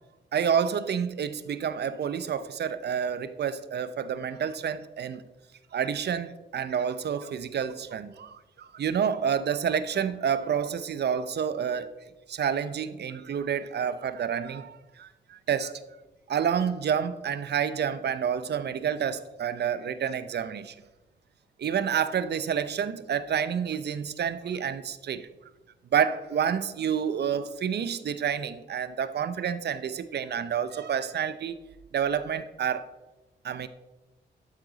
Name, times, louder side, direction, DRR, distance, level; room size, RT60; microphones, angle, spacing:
voice 1, 0.3-5.2 5.7-11.9 12.3-15.7 16.3-20.7 21.6-25.3 25.9-31.6 31.9-32.9 33.4-33.7, right 8 dB, 60° right, 0.7 m, -29 dB
11.5 x 8.0 x 4.0 m
cardioid pair, 75°, 20 cm